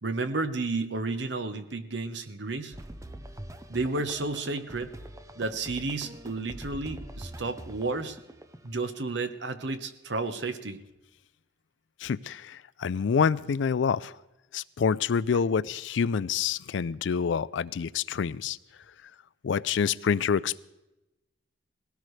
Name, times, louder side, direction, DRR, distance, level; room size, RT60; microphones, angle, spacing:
voice 1, 0.0-2.8 3.7-4.9 5.4-8.2 8.6-10.8 15.3-15.4, right 3 dB, 70° right, 9 dB, 1.0 m, -32 dB
sound 1, 2.7-8.8, right 1 dB, 15° right, 0.6 m, -44 dB
voice 2, 12.0-14.1 14.5-18.6 19.4-20.6, left 6 dB, 75° left, 19 dB, 0.4 m, -27 dB
19.0 x 17.0 x 3.3 m, 0.98 s
head